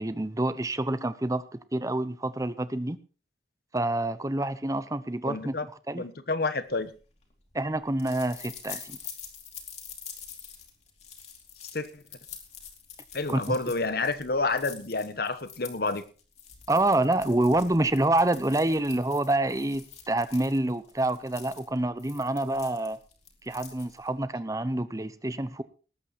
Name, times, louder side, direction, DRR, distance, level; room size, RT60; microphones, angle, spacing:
voice 1, 0.0-1.5 1.7-3.0 3.7-5.5 5.9-6.0 7.5-9.0 13.3-13.6 16.7-23.0 23.4-25.6, right 1 dB, 20° right, 14 dB, 0.8 m, -27 dB
voice 2, 5.3-5.6 6.0-6.9 11.7-12.0 13.1-16.0, left 3 dB, 60° left, 13 dB, 1.2 m, -29 dB
sound 1, 6.8-24.2, left 7 dB, 40° left, 2.8 m, -46 dB
19.0 x 8.4 x 4.4 m, 0.37 s
head